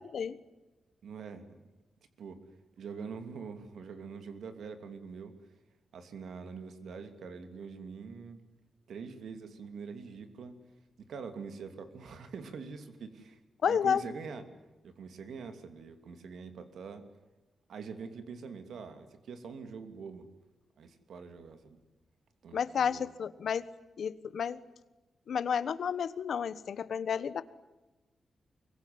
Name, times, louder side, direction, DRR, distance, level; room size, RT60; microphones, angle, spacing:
voice 1, 1.0-1.5 2.2-2.4 2.8-5.4 5.9-8.4 8.9-10.6 11.0-13.4 13.7-14.4 14.8-17.1 17.7-20.3 20.8-21.8 22.4-23.1, right 5 dB, 75° right, 9 dB, 2.8 m, -44 dB
voice 2, 13.6-14.0 22.5-23.6 24.0-24.6 25.3-27.4, left 7 dB, 60° left, 15 dB, 1.2 m, -31 dB
24.5 x 23.0 x 9.5 m, 1.1 s
wide cardioid pair, 175°, 0 cm